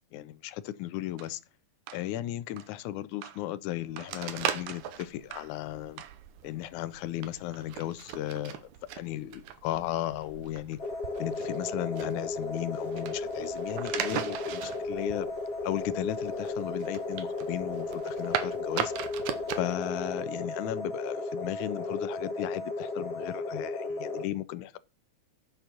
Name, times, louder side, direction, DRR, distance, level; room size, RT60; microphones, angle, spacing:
voice 1, 0.1-1.4 1.9-6.0 6.4-8.7 9.0-10.8 11.2-15.3 15.6-18.9 19.6-24.8, left 14 dB, 90° left, 2.1 m, -35 dB
sound 1, 1.2-1.4 1.9-2.1 2.6-2.7 3.2-3.5 4.0-4.2 4.7-4.9 5.3-5.6 6.0-6.3, right 10 dB, 70° right, 1.8 m, -47 dB
sound 2, 4.1-19.6, right 10 dB, 85° right, 2.4 m, -39 dB
sound 3, 10.8-24.3, left 3 dB, 55° left, 2.9 m, -35 dB
9.6 x 6.8 x 5.9 m
omnidirectional pair, 3.4 m